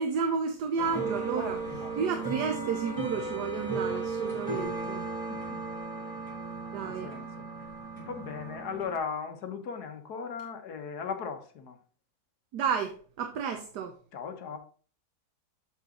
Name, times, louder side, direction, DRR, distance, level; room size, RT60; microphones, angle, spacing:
voice 1, 0.0-1.6 2.0-5.0 6.7-7.1 12.5-13.9, right 6 dB, 75° right, 1.4 m, -31 dB
sound 1, 0.8-9.0, right 3 dB, 20° right, 3.1 m, -35 dB
voice 2, 1.3-2.0 5.3-5.6 6.0-6.2 6.8-11.8 14.1-14.6, left 6 dB, 65° left, 1.6 m, -38 dB
8.0 x 5.7 x 3.8 m
omnidirectional pair, 1.8 m